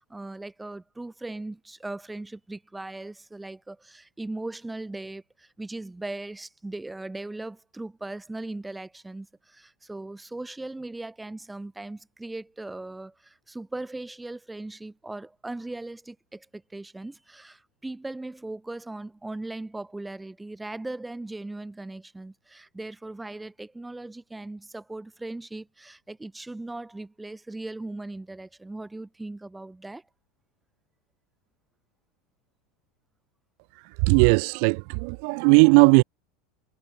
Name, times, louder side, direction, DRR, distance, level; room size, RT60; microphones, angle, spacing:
voice 1, 0.0-30.0, right 2 dB, 5° right, 2.2 m, -38 dB
voice 2, 34.0-36.0, right 40 dB or more, 55° right, 0.4 m, -18 dB
supercardioid pair, 160°, 0 cm